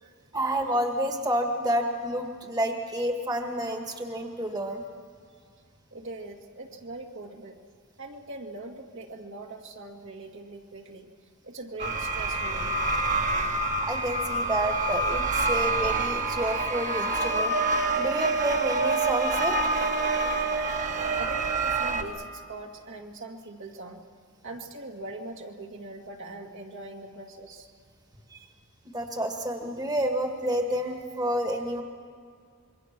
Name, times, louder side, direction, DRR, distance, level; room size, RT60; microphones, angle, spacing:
voice 1, 0.3-4.8 13.8-17.5 18.0-19.7 28.3-28.4 28.9-31.8, right 1 dB, 20° right, 3 dB, 1.7 m, -29 dB
voice 2, 5.9-7.6 8.0-11.1 11.4-12.9 21.2-24.0 24.4-27.7, right 2 dB, 60° right, 1 dB, 2.2 m, -41 dB
sound 1, 11.8-22.0, right 3 dB, 35° right, 1.6 m, -27 dB
27.0 x 23.0 x 6.1 m, 2.2 s
head